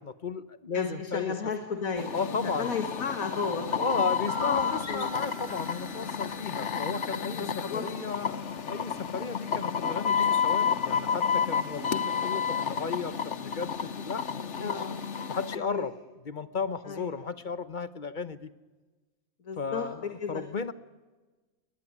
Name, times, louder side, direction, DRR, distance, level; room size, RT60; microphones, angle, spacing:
voice 1, 0.0-1.3 2.1-2.7 3.8-14.8 15.3-15.9 16.2-18.5 19.6-20.7, left 5 dB, 40° left, 15 dB, 0.9 m, -34 dB
voice 2, 0.7-3.8 4.4-5.1 5.9-6.4 7.4-7.8 14.6-14.9 15.5-15.9 16.8-17.1 19.4-19.9 20.2-20.4, left 5 dB, 80° left, 6 dB, 2.2 m, -34 dB
sound 1, 2.0-15.6, left 7 dB, 55° left, 1.4 m, -31 dB
sound 2, 4.3-6.9, right 12 dB, 75° right, 4.2 m, -47 dB
21.0 x 20.5 x 9.7 m, 1.2 s
omnidirectional pair, 1.4 m